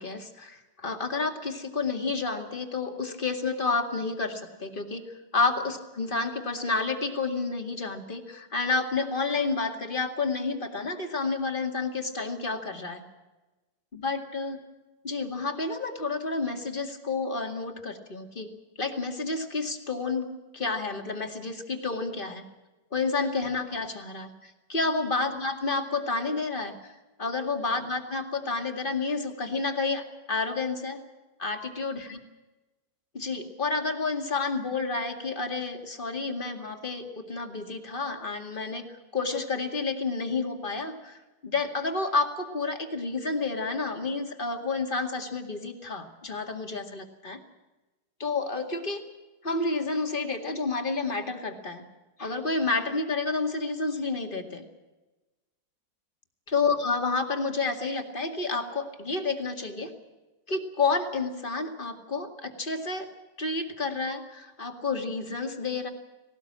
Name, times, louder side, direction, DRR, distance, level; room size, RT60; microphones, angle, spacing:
voice 1, 0.0-5.0 5.3-13.0 13.9-14.6 15.0-18.5 18.8-20.3 20.5-22.4 22.9-31.0 31.4-32.2 33.1-38.8 39.1-47.4 48.2-49.0 49.4-51.8 52.2-54.6 56.5-59.9 60.5-63.1 63.4-65.9, left 3 dB, 30° left, 5 dB, 2.3 m, -30 dB
18.5 x 18.5 x 8.8 m, 1.1 s
omnidirectional pair, 1.7 m